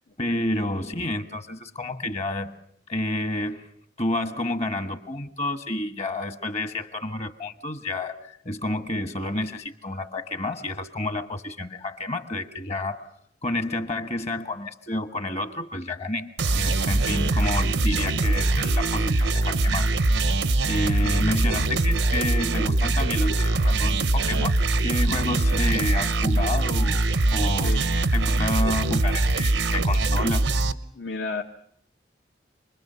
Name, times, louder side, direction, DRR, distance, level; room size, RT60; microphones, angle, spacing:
voice 1, 0.2-2.6 2.9-3.7 4.0-13.1 13.4-19.9 20.7-27.0 27.3-27.8 28.1-30.5, left 1 dB, 40° left, 9 dB, 1.3 m, -30 dB
sound 1, 16.4-30.7, right 2 dB, 85° right, 0.9 m, -22 dB
voice 2, 27.6-28.0 30.9-31.4, left 3 dB, 70° left, 3 dB, 1.1 m, -32 dB
27.5 x 21.0 x 6.7 m, 0.67 s
head